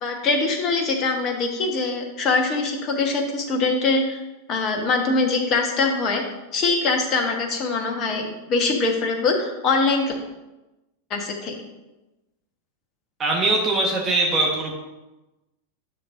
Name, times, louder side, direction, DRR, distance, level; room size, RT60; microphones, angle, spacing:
voice 1, 0.0-4.2 4.5-6.2 6.5-10.2 11.1-11.5, left 3 dB, 35° left, 3 dB, 1.3 m, -23 dB
voice 2, 13.2-14.7, right 2 dB, 25° right, -1 dB, 1.2 m, -21 dB
10.0 x 6.4 x 2.6 m, 1.0 s
figure-of-eight pair, 90°, 0 cm